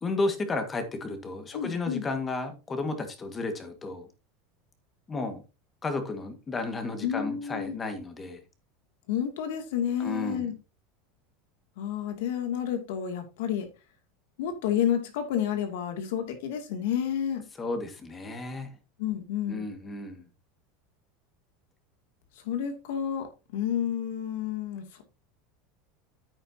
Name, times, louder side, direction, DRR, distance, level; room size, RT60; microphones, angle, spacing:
voice 1, 0.0-4.1 5.1-5.4 5.8-8.4 10.0-10.5 17.6-18.7 19.5-20.3, left 3 dB, 20° left, 1.8 m, -33 dB
voice 2, 1.5-2.0 7.0-7.8 9.1-10.5 11.8-13.7 14.4-17.4 19.0-19.7 22.4-25.0, left 9 dB, 80° left, 2.6 m, -30 dB
10.0 x 8.8 x 2.8 m
supercardioid pair, 145°, 0 cm